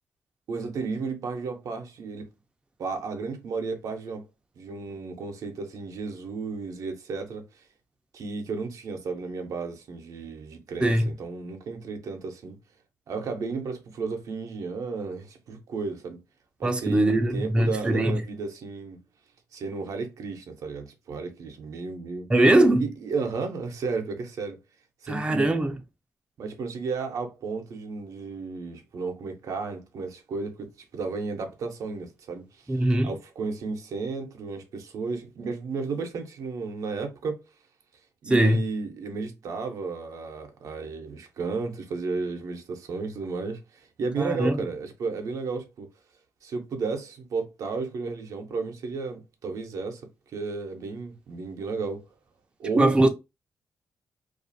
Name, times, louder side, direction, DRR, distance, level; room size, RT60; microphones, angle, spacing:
voice 1, 0.5-2.3 2.8-4.2 4.6-7.6 8.1-12.6 13.1-16.2 16.6-19.0 19.5-22.3 22.8-24.6 25.0-25.5 26.4-37.4 38.2-45.9 46.4-52.1 52.6-53.1, right 4 dB, 75° right, 0.6 m, -33 dB
voice 2, 16.6-18.2 22.3-22.8 25.1-25.8 32.7-33.1 38.3-38.6 44.2-44.6 52.8-53.1, right 1 dB, 15° right, 0.4 m, -21 dB
2.4 x 2.4 x 2.6 m
cardioid pair, 70°, 6 cm